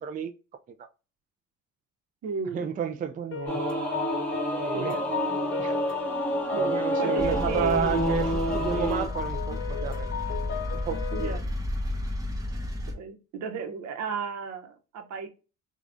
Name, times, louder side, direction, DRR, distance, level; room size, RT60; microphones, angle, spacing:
voice 1, 0.0-0.3 2.5-3.6 4.6-5.0 5.6-5.9 6.6-10.1 10.8-11.4, right 7 dB, 30° right, 0.3 m, -31 dB
voice 2, 2.2-2.7 4.7-5.1 6.5-8.0 11.1-11.5 12.9-15.3, right 5 dB, 65° right, 0.9 m, -34 dB
sound 1, 3.3-11.4, left 10 dB, 45° left, 0.6 m, -36 dB
Singing / Musical instrument, 3.5-9.1, right 1 dB, 5° left, 1.2 m, -29 dB
sound 2, 7.2-12.9, left 1 dB, 10° right, 0.9 m, -32 dB
4.7 x 2.4 x 2.5 m
cardioid pair, 100°, 30 cm